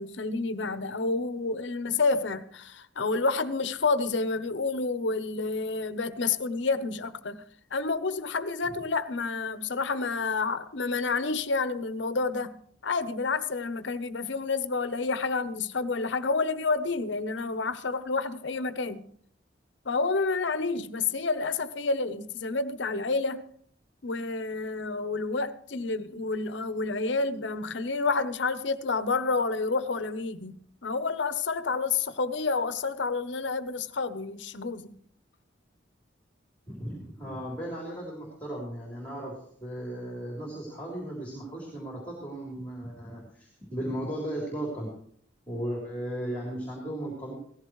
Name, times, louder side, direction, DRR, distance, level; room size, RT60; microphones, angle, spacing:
voice 1, 0.0-7.4 7.7-12.6 12.8-19.1 19.8-23.4 24.0-34.9, left 4 dB, 70° left, 0.8 m, -29 dB
voice 2, 36.7-44.9 45.5-47.3, right 1 dB, 10° left, 3.5 m, -36 dB
17.5 x 14.5 x 3.2 m
head